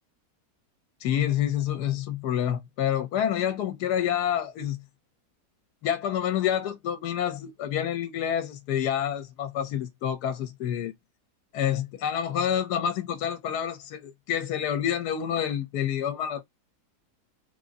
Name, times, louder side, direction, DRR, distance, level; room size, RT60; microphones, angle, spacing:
voice 1, 1.0-4.8 5.8-10.9 11.5-16.4, left 10 dB, 75° left, 1.2 m, -28 dB
3.6 x 2.6 x 3.8 m
omnidirectional pair, 1.8 m